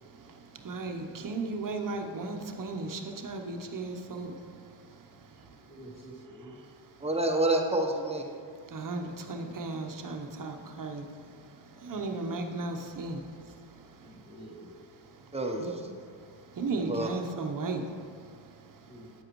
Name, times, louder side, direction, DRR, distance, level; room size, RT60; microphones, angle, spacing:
voice 1, 0.0-5.7 6.6-7.1 8.6-14.3 15.0-15.3 15.6-15.8 16.0-19.1, right 3 dB, 40° right, 4 dB, 0.9 m, -37 dB
voice 2, 5.5-6.6 11.7-12.2 14.0-14.9 15.2-15.3 18.9-19.1, right 1 dB, 25° left, -7 dB, 1.7 m, -49 dB
voice 3, 7.0-8.2 15.3-15.7 16.7-17.1, right 2 dB, 15° right, 2 dB, 0.9 m, -28 dB
10.5 x 7.7 x 3.1 m, 2.1 s
cardioid pair, 85°, 48 cm